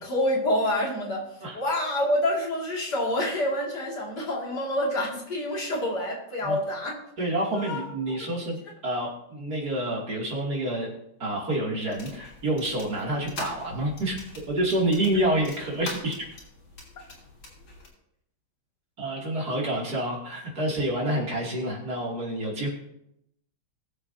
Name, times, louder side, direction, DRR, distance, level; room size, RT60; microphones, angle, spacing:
voice 1, 0.1-1.2 1.5-7.0 7.6-8.2, left 1 dB, 55° left, -3 dB, 2.9 m, -27 dB
voice 2, 7.2-8.6 8.8-10.9 11.2-14.2 14.5-16.3 19.0-22.7, right 1 dB, 50° right, -3 dB, 3.1 m, -28 dB
sound 1, 11.9-17.9, left 2 dB, 90° left, 3.9 m, -43 dB
21.5 x 7.5 x 2.7 m, 0.78 s
omnidirectional pair, 2.2 m